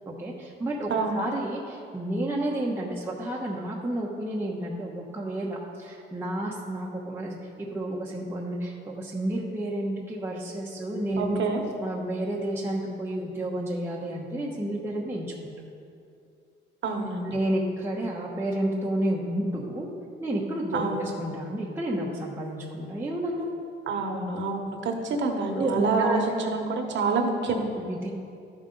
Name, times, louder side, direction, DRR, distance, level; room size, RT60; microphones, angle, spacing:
voice 1, 0.1-11.4 11.8-15.5 17.2-19.9 20.2-23.5 25.5-26.2 27.8-28.1, right 1 dB, 10° right, -5 dB, 1.1 m, -31 dB
voice 2, 11.2-11.6 16.8-17.3 20.7-21.0 23.9-27.6, right 4 dB, 70° right, 3 dB, 1.2 m, -27 dB
12.5 x 5.3 x 3.9 m, 2.5 s
cardioid pair, 90°, 20 cm